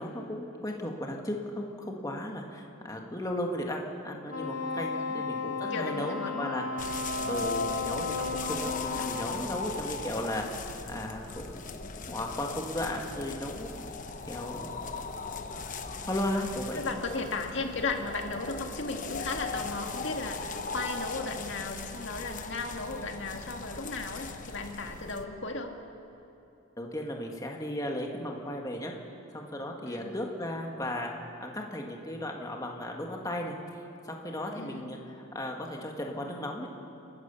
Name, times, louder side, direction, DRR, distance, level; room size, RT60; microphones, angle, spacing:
voice 1, 0.0-6.6 7.3-10.5 10.9-11.8 12.1-13.8 14.3-14.8 16.0-16.8 26.8-28.9 29.3-31.1 31.4-36.7, left 1 dB, 15° left, 1 dB, 1.8 m, -35 dB
Wind instrument woodwind instrument, 4.3-9.3, left 4 dB, 90° left, 2.3 m, -34 dB
voice 2, 5.7-6.6 7.2-7.4 10.4-10.6 16.7-25.8 29.9-30.1 34.6-34.9, left 3 dB, 60° left, 3 dB, 2.0 m, -36 dB
sound 1, 6.8-25.2, left 4 dB, 40° left, 1.0 m, -39 dB
29.0 x 12.5 x 7.1 m, 3.0 s
head